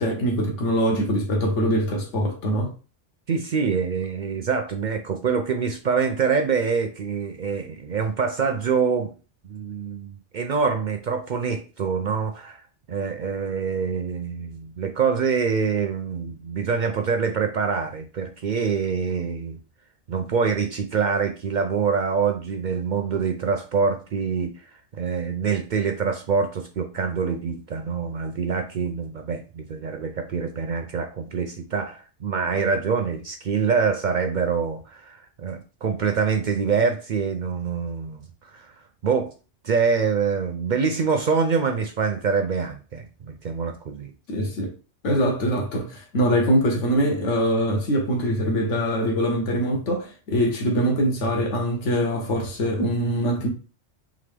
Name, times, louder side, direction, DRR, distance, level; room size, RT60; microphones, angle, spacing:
voice 1, 0.0-2.7 44.3-44.7 45.0-53.5, equal, 80° left, 1.4 m, -23 dB
voice 2, 3.3-9.1 9.4-12.6 12.9-19.6 20.1-24.5 24.9-38.8 39.0-39.3 39.6-44.1, right 5 dB, 60° right, 0.5 m, -25 dB
3.8 x 3.6 x 3.4 m
omnidirectional pair, 1.2 m